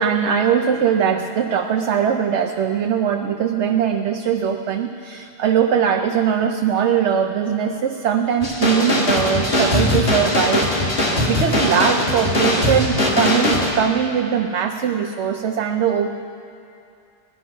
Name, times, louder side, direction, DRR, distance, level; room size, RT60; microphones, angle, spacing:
voice 1, 0.0-16.1, right 8 dB, 85° right, 5 dB, 0.9 m, -21 dB
sound 1, 8.4-13.7, left 1 dB, 80° left, 2.2 m, -20 dB
18.0 x 11.5 x 5.7 m, 2.6 s
omnidirectional pair, 1.1 m